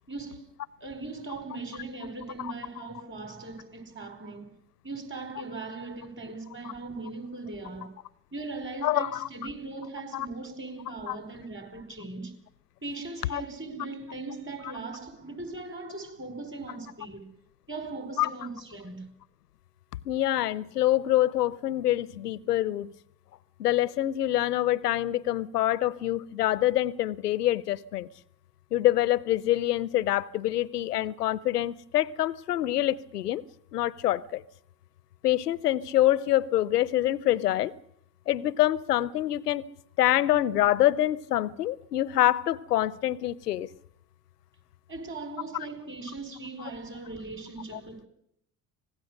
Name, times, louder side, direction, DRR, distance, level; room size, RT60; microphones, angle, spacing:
voice 1, 0.1-0.5 0.8-4.5 4.8-8.0 8.3-12.3 12.8-17.3 17.7-19.1 44.9-48.1, right 3 dB, 25° right, 5.3 m, -39 dB
voice 2, 8.8-9.3 10.1-10.3 11.1-11.2 13.3-13.4 18.2-18.3 20.1-22.9 23.6-28.1 28.7-33.4 33.7-34.4 35.2-37.7 38.3-39.6 40.0-43.7 47.7-47.8, left 14 dB, 90° left, 0.8 m, -26 dB
25.0 x 19.0 x 6.5 m
hypercardioid pair, 60°, 46 cm